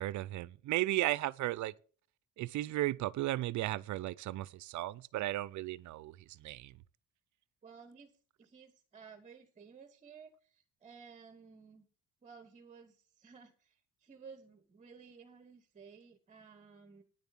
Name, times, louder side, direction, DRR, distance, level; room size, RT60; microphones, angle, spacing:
voice 1, 0.0-1.7 2.4-6.7, right 16 dB, 60° right, 0.5 m, -35 dB
voice 2, 7.6-8.1 8.4-11.9 12.2-17.0, right 5 dB, 20° right, 1.0 m, -55 dB
9.9 x 7.1 x 7.2 m
cardioid pair, 175°, 32 cm